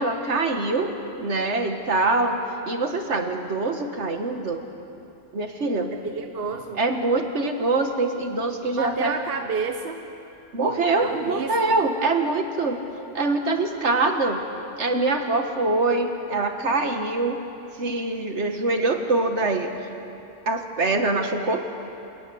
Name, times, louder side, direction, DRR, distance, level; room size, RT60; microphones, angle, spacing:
voice 1, 0.0-2.4 2.7-4.6 5.3-6.0 6.8-9.1 10.5-12.8 13.1-14.4 14.8-17.4 17.8-19.7 20.5-21.7, right 3 dB, 70° right, 5 dB, 1.9 m, -24 dB
voice 2, 5.9-6.8 8.8-10.0 11.0-11.8, right 5 dB, 55° right, 6 dB, 1.1 m, -30 dB
27.5 x 18.5 x 7.9 m, 2.8 s
omnidirectional pair, 1.2 m